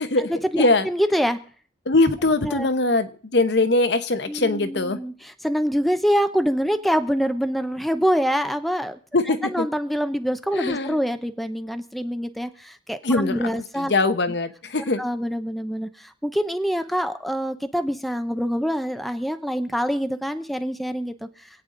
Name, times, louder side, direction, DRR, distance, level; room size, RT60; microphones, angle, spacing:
voice 1, 0.0-1.4 2.4-2.7 4.3-9.0 9.4-13.9 15.0-21.3, equal, ahead, 8 dB, 0.6 m, -25 dB
voice 2, 1.9-5.0 9.1-9.7 10.5-11.0 13.0-13.5 13.8-15.0, left 2 dB, 65° left, 10 dB, 0.9 m, -21 dB
26.5 x 8.8 x 3.8 m, 0.43 s
head